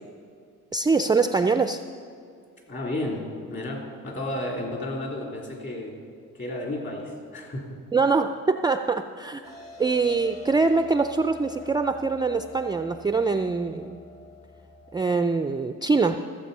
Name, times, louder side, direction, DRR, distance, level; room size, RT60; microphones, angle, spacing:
voice 1, 0.7-1.8 7.9-14.0 14.9-16.3, right 4 dB, 15° right, 8 dB, 0.4 m, -24 dB
voice 2, 2.7-3.2 3.5-5.9 6.3-7.7, left 1 dB, 40° left, -1 dB, 3.3 m, -32 dB
sound 1, 9.4-15.0, left 1 dB, 55° left, 3.3 m, -45 dB
15.0 x 7.5 x 5.5 m, 2.3 s
cardioid pair, 90°, 30 cm